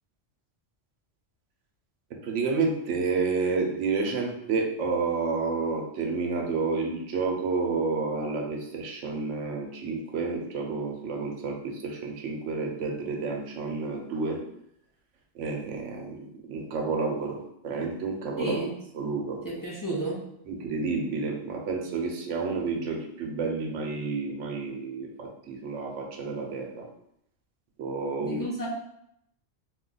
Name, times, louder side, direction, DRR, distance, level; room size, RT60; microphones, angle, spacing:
voice 1, 2.1-14.4 15.3-18.5 18.9-19.4 20.5-26.9 27.8-28.4, right 4 dB, 80° right, 1 dB, 1.0 m, -30 dB
voice 2, 18.4-18.7 19.4-20.2 28.2-28.7, right 1 dB, 25° left, -5 dB, 0.4 m, -31 dB
2.6 x 2.3 x 3.8 m, 0.76 s
omnidirectional pair, 1.2 m